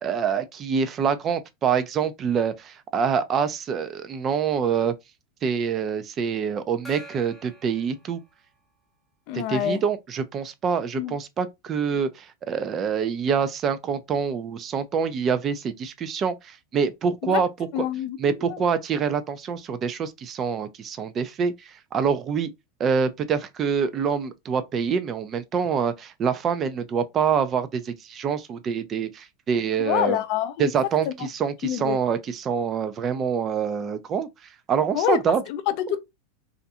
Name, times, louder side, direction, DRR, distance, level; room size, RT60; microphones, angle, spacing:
voice 1, 0.0-5.0 5.4-8.2 9.3-17.5 18.2-22.5 22.8-30.2 30.6-34.3 34.7-35.4, right 6 dB, 30° right, 0.4 m, -26 dB
Gong, 6.8-8.9, equal, ahead, 0.8 m, -47 dB
voice 2, 9.3-9.8 10.9-11.1 17.2-17.4 17.7-18.7 29.8-30.7 31.1-31.2 31.6-32.0 34.9-35.2 35.5-36.0, left 11 dB, 55° left, 0.4 m, -26 dB
2.4 x 2.2 x 2.6 m
supercardioid pair, 130°, 0 cm